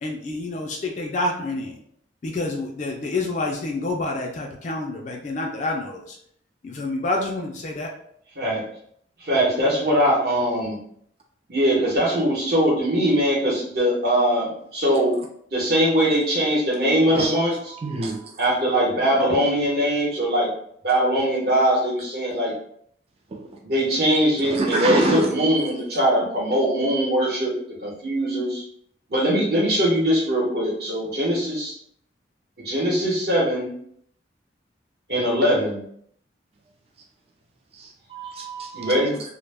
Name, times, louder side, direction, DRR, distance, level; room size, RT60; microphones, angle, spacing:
voice 1, 0.0-1.8 2.2-6.2 6.6-7.9, left 2 dB, 40° left, 0.3 m, -28 dB
voice 2, 9.2-10.8 11.5-15.2 15.5-17.7 18.4-20.5 20.8-22.5 23.6-27.5 27.8-28.6 29.1-31.7 32.6-33.7 35.1-35.8 38.7-39.2, equal, 60° right, 0.9 m, -21 dB
voice 3, 17.8-18.2 23.3-23.4 24.4-25.3 38.1-39.0, right 2 dB, 35° right, 0.3 m, -25 dB
2.1 x 2.1 x 3.2 m
head